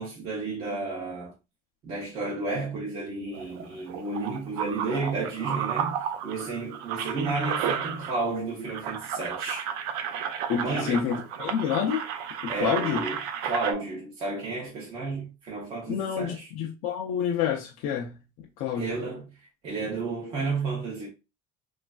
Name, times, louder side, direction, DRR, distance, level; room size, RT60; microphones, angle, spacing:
voice 1, 0.0-1.3 1.8-9.7 10.6-11.0 12.5-16.5 18.7-19.3 19.6-21.1, right 3 dB, 30° right, 0.6 m, -32 dB
sound 1, 3.3-8.4 8.7-13.7, right 8 dB, 70° right, 0.4 m, -33 dB
voice 2, 10.5-12.1 12.4-13.0 15.9-19.0, left 8 dB, 50° left, 0.4 m, -29 dB
3.1 x 2.4 x 2.2 m
cardioid pair, 170°, 17 cm